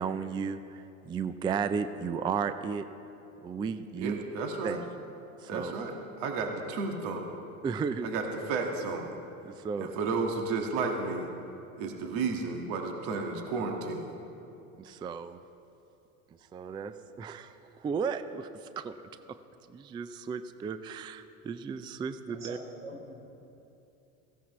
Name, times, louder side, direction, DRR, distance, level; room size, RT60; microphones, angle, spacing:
voice 1, 0.0-2.8 3.4-4.2 4.6-4.9 5.4-5.7 7.6-8.1 9.4-9.9 14.8-15.4 16.5-19.0 19.3-19.4 19.7-22.6, right 6 dB, 10° right, 11 dB, 0.3 m, -34 dB
voice 2, 4.0-4.8 5.5-7.3 8.0-9.1 9.8-11.3 11.8-14.1, right 4 dB, 60° right, 2 dB, 1.8 m, -32 dB
voice 3, 22.3-23.1, right 1 dB, 90° right, -1 dB, 3.7 m, -44 dB
17.0 x 15.5 x 3.1 m, 2.9 s
hypercardioid pair, 90°, 41 cm